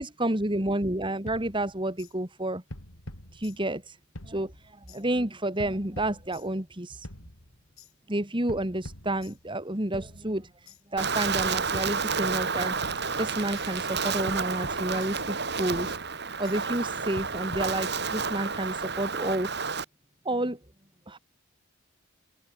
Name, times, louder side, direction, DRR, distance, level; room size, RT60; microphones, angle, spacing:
voice 1, 0.0-2.6 3.3-4.0 4.2-4.5 4.9-7.1 8.1-10.5 10.9-12.8 13.2-16.0 16.4-19.5 20.3-20.6 21.1-21.2, right 1 dB, 20° right, 2.5 m, -30 dB
sound 1, 1.3-2.1 2.7-3.9 4.1-5.0 5.6-6.7 7.0-7.9 8.5-9.6 9.9-10.8 11.4-12.5 12.8-13.7 14.3-15.4 15.7-16.6 17.2-18.3, left 1 dB, 75° left, 5.7 m, -45 dB
Wind, 11.0-19.8, right 5 dB, 50° right, 6.5 m, -30 dB
head